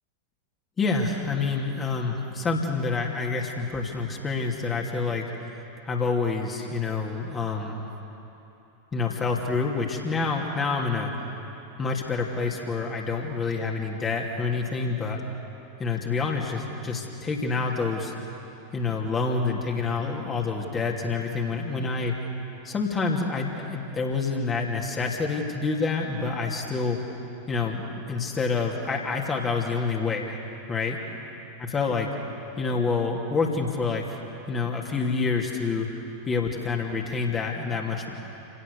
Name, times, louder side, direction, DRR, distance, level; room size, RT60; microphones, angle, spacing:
voice 1, 0.8-5.2 5.9-7.8 8.9-11.1 11.8-15.2 15.8-18.1 18.7-22.1 22.6-27.0 27.5-30.3 30.7-31.0 31.7-32.1 32.6-34.0 34.5-35.9 36.3-38.1, left 4 dB, 20° left, 0 dB, 2.8 m, -27 dB
28.5 x 18.0 x 6.8 m, 3.0 s
figure-of-eight pair, 90°, 0 cm